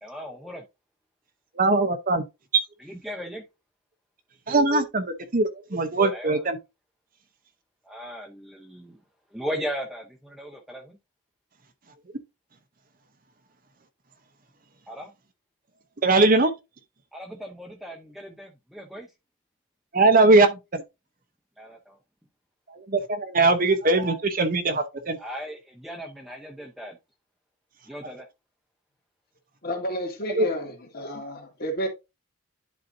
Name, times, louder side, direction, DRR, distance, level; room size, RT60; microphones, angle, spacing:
voice 1, 0.0-0.6 2.8-3.4 6.0-6.5 7.8-9.0 9.3-11.0 14.9-15.1 17.1-19.1 21.6-22.0 25.2-27.0 27.9-28.3, equal, ahead, 0.7 m, -37 dB
voice 2, 1.6-2.2 2.5-2.6 4.5-6.6 16.0-16.5 19.9-20.8 22.9-25.2 30.4-30.5, right 3 dB, 40° right, 0.8 m, -20 dB
voice 3, 29.6-31.9, equal, 45° left, 2.1 m, -31 dB
10.5 x 4.1 x 2.6 m
head